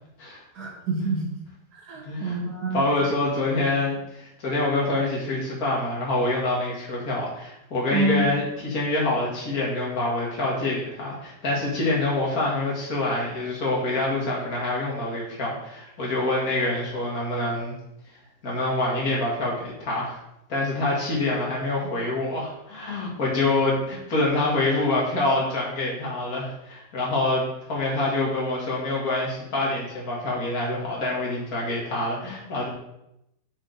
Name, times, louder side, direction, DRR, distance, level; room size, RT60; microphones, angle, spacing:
voice 1, 0.5-1.3 1.8-2.9 7.9-8.3 21.8-21.9, right 2 dB, 75° right, -2 dB, 2.2 m, -27 dB
voice 2, 2.1-2.4 2.7-17.8 18.4-20.2 20.5-32.7, left 2 dB, 60° left, -4 dB, 2.6 m, -26 dB
7.4 x 5.1 x 6.5 m, 0.82 s
omnidirectional pair, 1.8 m